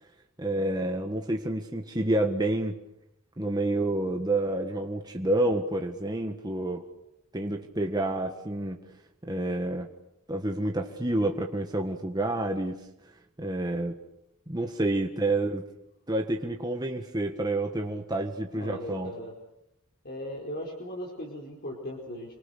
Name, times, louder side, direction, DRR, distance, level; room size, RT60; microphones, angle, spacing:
voice 1, 0.4-2.8 3.4-6.8 7.3-8.9 9.2-9.9 10.3-12.8 13.4-14.0 14.5-15.6 16.1-19.1, right 1 dB, 20° right, 3 dB, 1.6 m, -29 dB
voice 2, 18.5-19.3 20.0-22.4, equal, 50° left, -2 dB, 5.0 m, -38 dB
28.0 x 25.0 x 6.7 m, 0.84 s
head